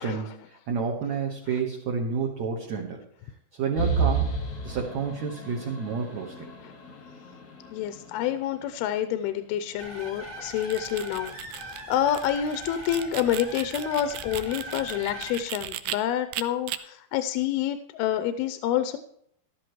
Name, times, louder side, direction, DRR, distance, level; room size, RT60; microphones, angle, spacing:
voice 1, 0.0-3.1 3.6-4.3 4.6-6.5, right 5 dB, 60° right, 0 dB, 2.1 m, -30 dB
sound 1, 3.8-9.3, right 4 dB, 50° left, 1.1 m, -32 dB
voice 2, 7.7-19.0, left 10 dB, 85° left, 10 dB, 2.6 m, -28 dB
sound 2, 9.8-15.4, right 1 dB, 15° right, 0.8 m, -40 dB
sound 3, 10.5-16.0 16.3-16.8, right 14 dB, 85° right, 2.0 m, -37 dB
13.0 x 12.0 x 3.1 m, 0.69 s
omnidirectional pair, 4.5 m